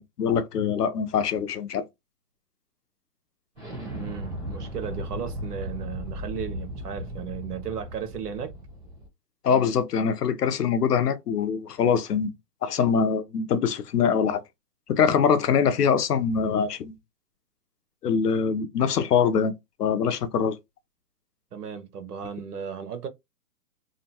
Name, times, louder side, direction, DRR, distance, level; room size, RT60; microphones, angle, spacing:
voice 1, 0.0-1.8 9.4-12.3 12.6-14.4 14.9-17.0 18.0-19.5 19.8-20.6, left 6 dB, 80° left, 0.7 m, -23 dB
Explosion, 3.5-9.1, equal, 10° right, 1.2 m, -36 dB
voice 2, 3.9-8.5 21.5-23.1, right 7 dB, 75° right, 0.9 m, -35 dB
2.8 x 2.2 x 2.8 m
hypercardioid pair, 175°, 47 cm